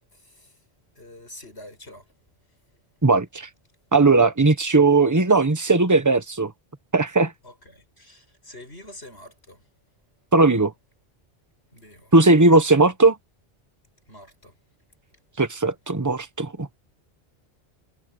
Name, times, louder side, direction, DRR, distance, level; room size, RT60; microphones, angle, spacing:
voice 1, 0.1-0.6 0.9-2.2 7.4-9.6 11.7-12.1 12.6-12.7 14.1-14.6, left 1 dB, 85° left, 7.9 m, -46 dB
voice 2, 3.0-3.5 3.9-6.5 6.9-7.3 10.3-10.7 12.1-13.2 15.4-16.8, right 3 dB, 15° right, 1.2 m, -18 dB
omnidirectional pair, 1.1 m